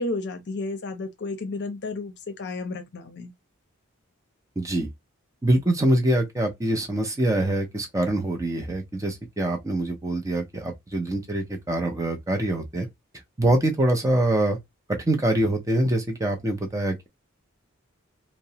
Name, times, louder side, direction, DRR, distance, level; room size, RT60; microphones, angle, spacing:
voice 1, 0.0-3.3, left 2 dB, 55° left, 0.6 m, -32 dB
voice 2, 4.6-4.9 5.4-12.9 13.4-14.6 15.0-17.1, right 1 dB, 15° right, 0.5 m, -24 dB
2.8 x 2.0 x 2.7 m
head